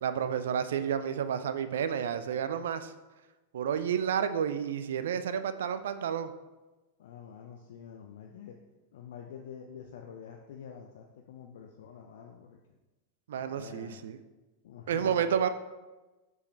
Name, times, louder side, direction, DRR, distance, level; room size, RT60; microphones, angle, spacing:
voice 1, 0.0-2.9 3.5-6.3 13.3-14.2 14.9-15.5, right 8 dB, 60° right, 11 dB, 0.4 m, -30 dB
voice 2, 7.0-8.6 8.9-12.6 13.3-14.0 14.6-15.5, left 7 dB, 55° left, 3 dB, 0.5 m, -47 dB
6.1 x 5.3 x 3.2 m, 1.1 s
figure-of-eight pair, 90°, 0 cm